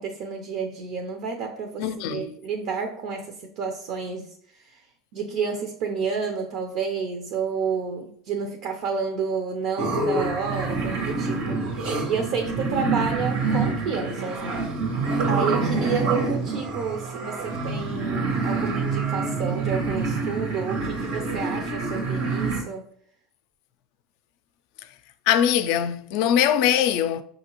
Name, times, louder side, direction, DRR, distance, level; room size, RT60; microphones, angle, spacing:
voice 1, 0.0-4.3 4.6-4.8 5.1-14.7 15.3-22.9, right 5 dB, 65° right, 0.6 m, -30 dB
voice 2, 1.8-2.3 25.3-27.2, left 9 dB, 65° left, 0.4 m, -22 dB
sound 1, 9.8-22.6, right 3 dB, 90° right, 1.3 m, -26 dB
5.3 x 2.8 x 2.9 m
supercardioid pair, 105°, 0 cm